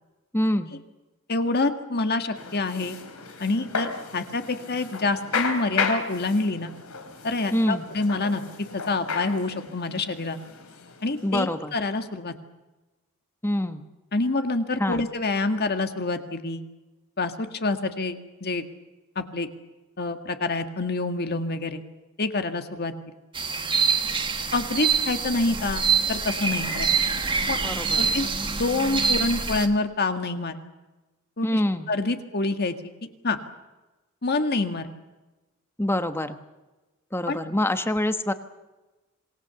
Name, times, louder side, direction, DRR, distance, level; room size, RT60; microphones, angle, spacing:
voice 1, 0.3-0.7 7.5-7.8 11.2-11.7 13.4-13.9 14.8-15.0 27.6-28.0 31.4-31.9 35.8-36.4 37.1-38.3, left 1 dB, 10° left, 9 dB, 1.2 m, -25 dB
voice 2, 1.3-3.0 3.4-6.7 7.2-8.4 8.7-10.4 11.0-12.3 14.1-16.6 17.2-18.6 19.1-19.5 20.0-21.8 22.2-23.1 24.5-26.9 27.5-27.6 27.9-28.3 28.6-30.6 31.4-31.6 31.9-32.7 33.2-33.4 34.2-34.9 37.3-37.4, left 3 dB, 45° left, 7 dB, 1.8 m, -27 dB
sound 1, 2.3-11.7, left 5 dB, 85° left, 3.5 m, -34 dB
sound 2, 23.3-29.7, right 5 dB, 25° right, 1.6 m, -25 dB
27.0 x 19.5 x 7.0 m, 1.1 s
head